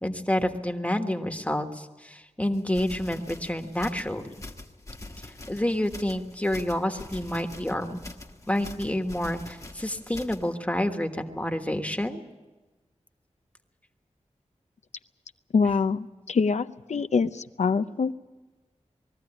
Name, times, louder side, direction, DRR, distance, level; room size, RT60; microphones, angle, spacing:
voice 1, 0.0-4.2 5.5-8.0 8.5-12.2, left 1 dB, 10° left, 5 dB, 1.4 m, -28 dB
sound 1, 2.5-10.5, left 2 dB, 25° left, 1.3 m, -44 dB
voice 2, 15.5-18.1, left 5 dB, 75° left, 11 dB, 0.6 m, -25 dB
21.0 x 14.0 x 9.9 m, 1.2 s
wide cardioid pair, 90°, 12 cm